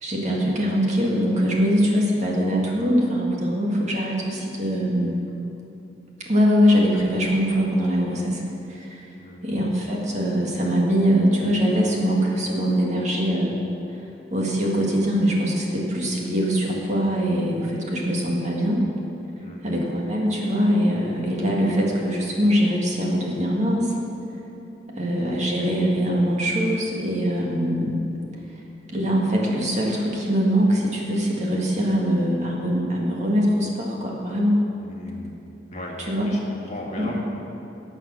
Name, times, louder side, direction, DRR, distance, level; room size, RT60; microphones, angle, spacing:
voice 1, 0.0-5.2 6.3-8.4 8.7-9.1 9.4-13.5 14.3-18.8 19.6-23.9 25.0-28.2 28.9-34.6 36.0-36.3 37.0-37.2, equal, 40° right, -2 dB, 2.0 m, -22 dB
voice 2, 9.2-9.7 19.4-19.7 34.8-35.4 35.7-36.0 36.3-37.2, left 1 dB, 40° left, -2 dB, 1.9 m, -37 dB
18.0 x 6.6 x 6.3 m, 2.9 s
head